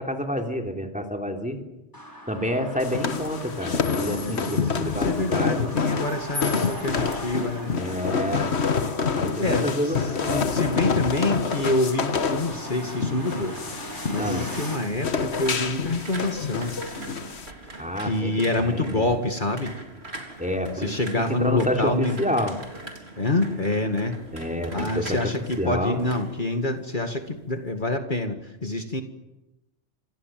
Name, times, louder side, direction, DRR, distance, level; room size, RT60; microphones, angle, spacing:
voice 1, 0.0-1.6 2.3-5.6 7.7-8.5 9.1-10.5 14.2-14.5 17.8-18.3 18.6-19.2 20.4-20.9 21.1-22.5 24.3-25.2 25.6-26.0, equal, 5° right, 3 dB, 3.4 m, -28 dB
sound 1, 1.9-14.8, equal, 20° left, 5.8 m, -39 dB
sound 2, 2.8-17.5, left 5 dB, 70° left, 1.6 m, -28 dB
voice 2, 4.0-7.7 9.4-10.1 10.5-13.6 14.1-16.7 17.7-19.7 20.8-22.2 23.2-24.2 24.7-29.0, left 2 dB, 45° left, 5 dB, 2.2 m, -27 dB
sound 3, 13.3-27.2 27.5-27.9, right 2 dB, 70° right, 4.2 m, -42 dB
27.5 x 27.0 x 7.6 m, 0.95 s
omnidirectional pair, 1.1 m